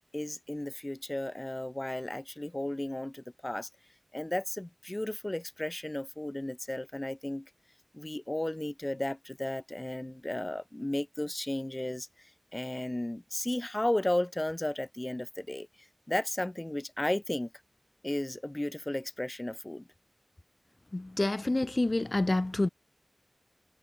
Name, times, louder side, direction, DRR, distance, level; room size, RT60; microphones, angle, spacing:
voice 1, 0.1-3.7 4.1-7.5 7.9-12.1 12.5-15.7 16.1-17.5 18.0-19.8, left 1 dB, 30° left, 1.5 m, -34 dB
voice 2, 20.9-22.7, left 2 dB, 45° left, 3.1 m, -28 dB
wide cardioid pair, 45°, 0 cm